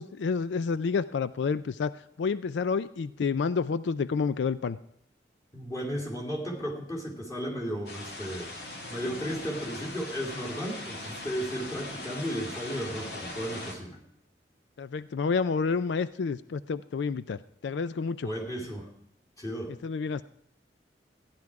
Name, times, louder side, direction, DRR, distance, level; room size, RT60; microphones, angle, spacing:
voice 1, 0.0-1.9 2.2-4.8 14.8-18.3 19.8-20.2, left 5 dB, 80° left, 15 dB, 0.4 m, -29 dB
voice 2, 5.5-14.0 18.2-18.9 19.4-19.7, equal, 20° left, -2 dB, 2.6 m, -34 dB
sound 1, 7.9-13.7, left 2 dB, 65° left, 2.2 m, -40 dB
15.0 x 10.5 x 4.7 m, 0.73 s
head